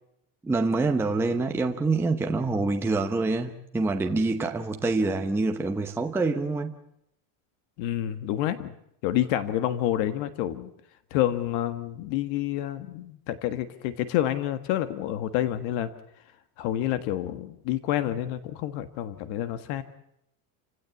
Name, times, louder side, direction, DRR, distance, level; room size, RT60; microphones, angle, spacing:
voice 1, 0.4-6.7, right 3 dB, 5° right, 4 dB, 0.9 m, -26 dB
voice 2, 7.8-8.7 9.0-10.7 11.1-15.9 16.6-19.8, left 12 dB, 55° left, 11 dB, 1.6 m, -28 dB
29.5 x 16.5 x 8.4 m, 0.78 s
cardioid pair, 170°, 45 cm